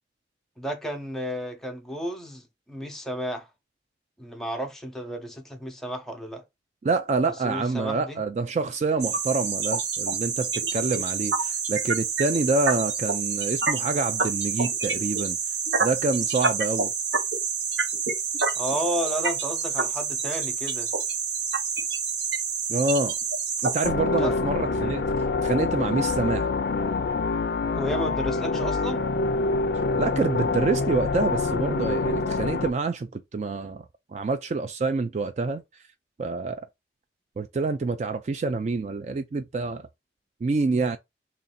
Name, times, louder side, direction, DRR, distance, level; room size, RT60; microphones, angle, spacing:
voice 1, 0.6-2.4 2.7-3.5 4.2-6.4 7.4-8.2 18.5-20.9 24.1-24.4 27.7-29.1, equal, ahead, 0.7 m, -32 dB
voice 2, 6.8-15.4 15.8-16.9 22.7-23.1 23.6-25.0 25.4-26.5 30.0-33.8 34.1-35.6 36.2-36.7 37.4-39.8 40.4-41.0, right 3 dB, 40° right, 0.3 m, -27 dB
sound 1, 9.0-23.9, right 5 dB, 75° right, 0.8 m, -27 dB
sound 2, 23.8-32.7, left 3 dB, 60° left, 0.4 m, -26 dB
3.1 x 2.6 x 4.0 m
head